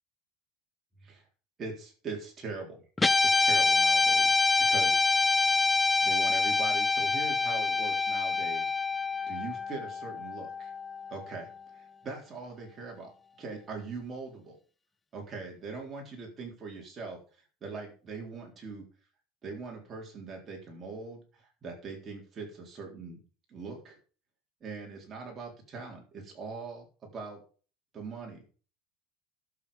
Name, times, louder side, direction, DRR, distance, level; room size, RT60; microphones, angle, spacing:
voice 1, 1.6-2.8 3.2-5.4 6.0-8.7 9.3-10.7 11.1-13.1 13.4-14.6 15.1-18.9 19.4-23.2 23.5-24.0 24.6-27.4 27.9-28.5, right 4 dB, 20° right, 0 dB, 3.8 m, -41 dB
Guitar, 3.0-11.5, left 4 dB, 10° left, 0.6 m, -26 dB
12.0 x 7.5 x 5.1 m, 0.38 s
cardioid pair, 165°, 0 cm